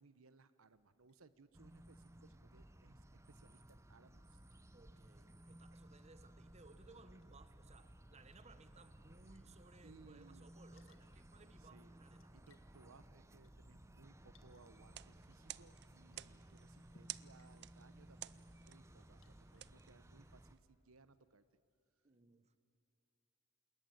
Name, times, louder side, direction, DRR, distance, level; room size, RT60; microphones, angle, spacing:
voice 1, 0.0-4.4 9.8-10.5 11.6-11.9 12.3-21.4, right 4 dB, 90° right, 13 dB, 0.9 m, -65 dB
Liquid, 0.7-19.7, left 2 dB, 70° left, 1.8 m, -77 dB
sound 1, 1.5-20.6, right 1 dB, 15° right, 0.8 m, -60 dB
voice 2, 4.7-12.3 22.0-22.6, right 3 dB, 30° right, 11 dB, 1.1 m, -63 dB
sound 2, 14.8-20.6, right 14 dB, 55° right, 0.5 m, -54 dB
27.0 x 21.0 x 9.3 m, 2.8 s
head